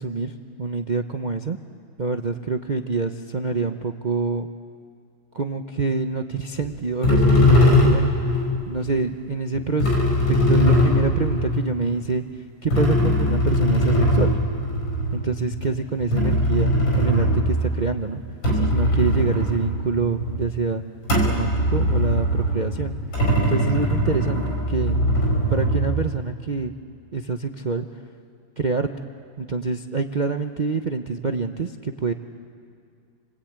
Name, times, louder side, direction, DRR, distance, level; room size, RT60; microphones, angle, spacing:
voice 1, 0.0-1.6 2.0-4.5 5.3-8.4 8.7-10.0 10.3-14.4 15.1-18.2 18.5-20.8 21.2-22.9 23.4-25.0 25.5-26.7 27.1-27.9 28.6-29.1 29.4-32.1, right 4 dB, 55° right, 5 dB, 0.4 m, -26 dB
sound 1, 6.6-6.7 7.0-8.7 9.5-12.1 12.7-17.9 18.3-20.5 21.0-26.1, left 1 dB, 80° left, 6.1 m, -21 dB
29.5 x 22.5 x 8.8 m, 2.2 s
omnidirectional pair, 2.1 m